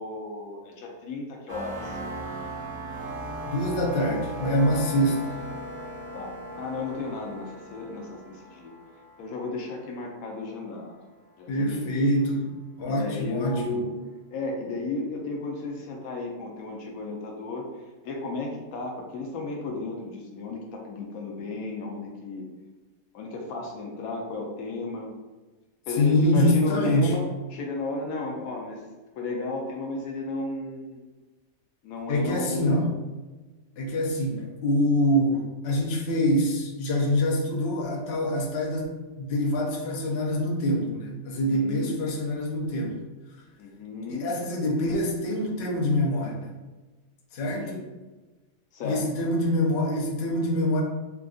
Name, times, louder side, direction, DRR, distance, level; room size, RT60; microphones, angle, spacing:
voice 1, 0.0-2.0 6.1-8.7 9.2-10.9 11.4-11.9 12.9-13.9 14.3-22.5 23.1-25.1 25.9-27.2 27.5-28.8 29.1-31.0 31.8-32.7 41.5-42.0 43.6-44.3 47.5-47.8 48.7-49.1, left 3 dB, 80° left, 0 dB, 1.0 m, -34 dB
sound 1, 1.5-10.1, right 1 dB, 80° right, 1.2 m, -38 dB
voice 2, 3.5-5.4 11.5-12.5 12.8-13.8 26.0-27.2 32.1-32.9 33.8-43.0 44.1-46.5 47.3-47.7 48.8-50.8, left 1 dB, 55° left, -2 dB, 0.8 m, -25 dB
3.5 x 2.5 x 2.3 m, 1.2 s
omnidirectional pair, 1.5 m